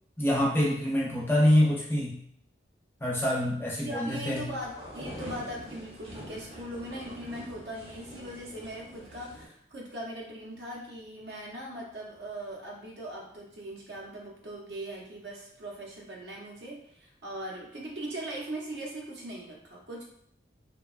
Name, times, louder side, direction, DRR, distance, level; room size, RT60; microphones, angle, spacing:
voice 1, 0.2-2.2 3.0-4.5, left 1 dB, 10° left, -5 dB, 0.5 m, -25 dB
voice 2, 3.8-20.0, right 1 dB, 70° right, -2 dB, 0.7 m, -40 dB
sound 1, 4.3-9.5, equal, 35° right, 0.6 m, -45 dB
2.8 x 2.2 x 2.4 m, 0.68 s
head